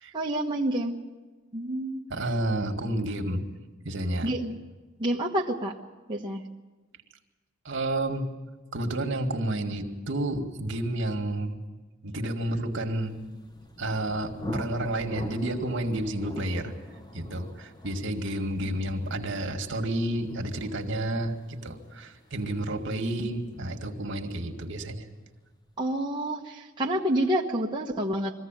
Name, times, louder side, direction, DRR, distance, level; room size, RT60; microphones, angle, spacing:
voice 1, 0.1-1.0 1.5-2.0 4.2-4.6 5.0-5.7 6.1-6.4 25.8-28.3, right 1 dB, 25° right, -2 dB, 1.2 m, -28 dB
voice 2, 2.1-3.4 3.8-4.3 7.7-8.3 8.7-11.6 12.0-13.2 13.8-16.7 17.1-25.1, right 1 dB, 65° right, 4 dB, 2.0 m, -30 dB
Thunder, 13.1-24.6, equal, 20° left, 1.0 m, -43 dB
22.0 x 15.0 x 9.0 m, 1.3 s
head